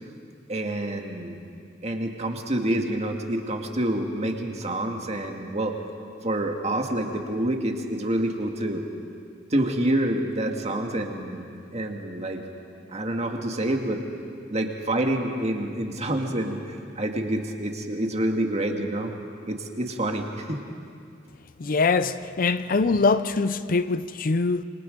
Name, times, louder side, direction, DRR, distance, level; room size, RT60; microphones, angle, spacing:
voice 1, 0.5-1.4 1.8-5.7 6.2-8.9 9.5-12.4 12.9-14.0 14.5-19.1 19.5-20.6, right 1 dB, 35° right, 2.0 m, -27 dB
voice 2, 21.6-24.6, left 4 dB, 50° left, 0.5 m, -23 dB
27.5 x 24.5 x 5.2 m
head